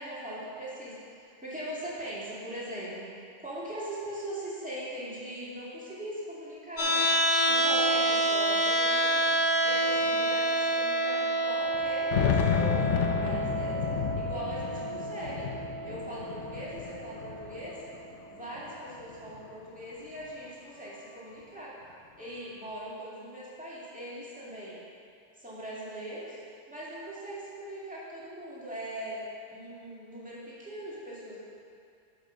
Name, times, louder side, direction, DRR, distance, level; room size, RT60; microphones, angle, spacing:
voice 1, 0.0-3.1 3.4-7.1 7.5-9.3 9.6-13.8 14.2-15.5 15.8-17.8 18.3-21.8 22.2-24.8 25.4-26.4 26.7-29.2 29.5-31.4, right 1 dB, 5° right, -8 dB, 2.2 m, -40 dB
sound 1, 6.8-18.8, right 1 dB, 90° left, 2.3 m, -29 dB
sound 2, 8.2-8.3 8.5-8.6 9.4-9.5 10.0-10.1 11.7-18.1 18.6-19.5, left 9 dB, 70° left, 0.9 m, -31 dB
7.6 x 7.3 x 6.1 m, 2.5 s
omnidirectional pair, 1.3 m